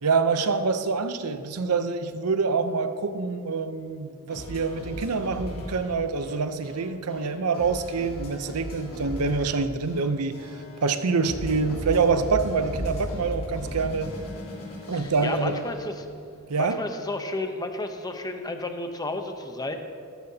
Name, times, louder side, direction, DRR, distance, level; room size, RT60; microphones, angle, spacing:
voice 1, 0.0-10.5 10.8-14.1 14.9-15.6 16.5-16.8, right 4 dB, 90° right, 10 dB, 0.7 m, -26 dB
sound 1, 4.3-16.2, equal, 70° left, 3.2 m, -37 dB
voice 2, 14.9-15.9 16.6-19.8, left 2 dB, 15° left, 5 dB, 0.8 m, -32 dB
15.5 x 13.0 x 2.8 m, 2.4 s
head